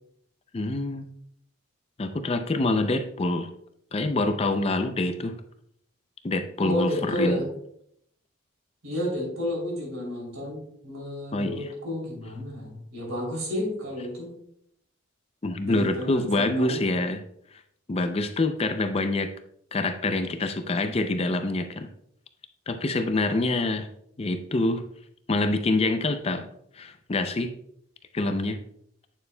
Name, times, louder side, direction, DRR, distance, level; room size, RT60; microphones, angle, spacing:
voice 1, 0.5-1.1 2.0-3.5 3.9-5.3 6.2-7.4 11.3-11.7 15.4-17.2 17.9-19.3 19.7-21.9 22.7-23.9 24.2-24.8 25.3-26.5 26.8-27.5 28.1-28.6, left 2 dB, 30° left, 8 dB, 0.4 m, -26 dB
voice 2, 6.6-7.5 8.8-14.4 15.6-16.8, left 1 dB, 80° right, -1 dB, 3.1 m, -31 dB
8.8 x 6.8 x 2.2 m, 0.70 s
head